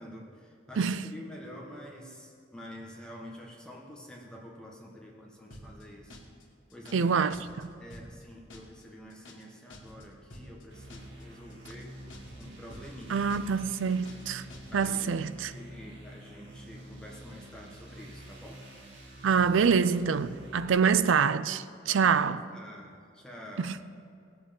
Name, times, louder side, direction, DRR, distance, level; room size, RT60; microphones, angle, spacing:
voice 1, 0.0-6.2 6.7-7.2 7.8-11.9 12.4-13.3 13.6-13.9 14.7-18.6 21.9-23.7, equal, 5° left, 1.4 m, -48 dB
sound 1, 5.5-5.8 6.1-6.4 6.7-7.1 7.3-7.7 7.9-8.2 8.5-8.8 9.1-9.5 9.7-10.1 10.3-10.6 10.9-11.2 11.5-11.9 12.1-12.5 12.7-13.0 13.3-13.6 13.9-14.3 14.5-14.9, left 1 dB, 70° left, 1.9 m, -49 dB
voice 2, 6.9-7.7 13.1-14.4 14.7-15.5 19.2-22.4 23.6-23.8, right 6 dB, 80° right, 0.4 m, -26 dB
sound 2, 10.7-20.7, right 1 dB, 65° right, 2.2 m, -48 dB
18.0 x 7.7 x 5.2 m
head